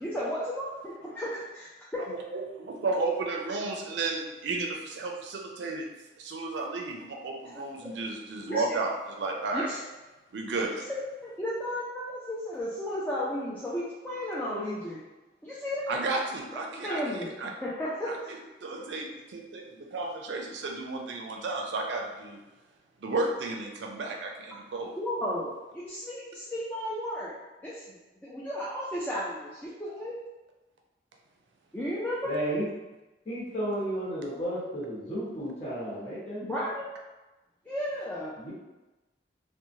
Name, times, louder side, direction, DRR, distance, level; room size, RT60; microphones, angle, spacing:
voice 1, 0.0-2.0 7.5-7.9 8.5-8.6 9.5-9.8 11.2-15.0 15.4-15.9 16.8-18.3 18.7-18.8 25.0-27.3 27.6-30.1 31.7-32.4 36.4-36.9 37.7-38.4, equal, 10° left, -8 dB, 0.3 m, -34 dB
voice 2, 2.1-5.9 6.2-9.7 10.3-10.9 15.9-17.5 18.1-22.4 23.0-24.9, right 3 dB, 75° right, 1 dB, 0.4 m, -33 dB
voice 3, 32.2-32.7 33.2-36.7 38.4-38.5, right 1 dB, 35° left, -10 dB, 1.2 m, -33 dB
3.0 x 2.1 x 2.6 m, 1.1 s
head